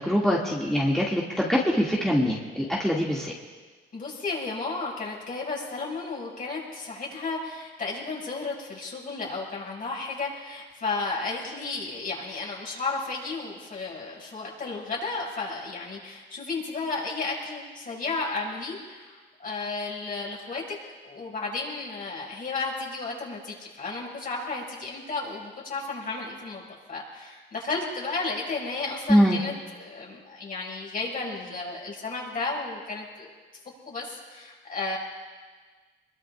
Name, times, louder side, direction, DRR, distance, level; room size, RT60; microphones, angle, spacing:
voice 1, 0.0-3.3 29.1-29.4, equal, ahead, -5 dB, 2.3 m, -23 dB
voice 2, 3.9-20.8 21.0-33.3 33.9-35.0, left 3 dB, 45° left, -3 dB, 6.6 m, -33 dB
24.5 x 22.0 x 2.5 m, 1.4 s
cardioid pair, 90°, 20 cm